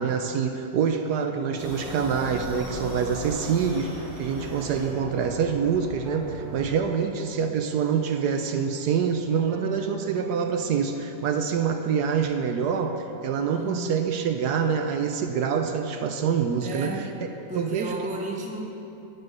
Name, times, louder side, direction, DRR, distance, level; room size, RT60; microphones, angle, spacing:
voice 1, 0.0-17.0 17.5-17.9, right 6 dB, 70° right, 6 dB, 1.1 m, -26 dB
sound 1, 1.6-6.6, left 1 dB, 70° left, 4.0 m, -37 dB
sound 2, 3.4-11.7, right 1 dB, 30° right, 1.4 m, -45 dB
voice 2, 13.5-14.0 16.6-17.2 17.5-18.6, right 1 dB, 5° right, 0 dB, 0.7 m, -34 dB
12.0 x 7.9 x 6.6 m, 3.0 s
omnidirectional pair, 1.9 m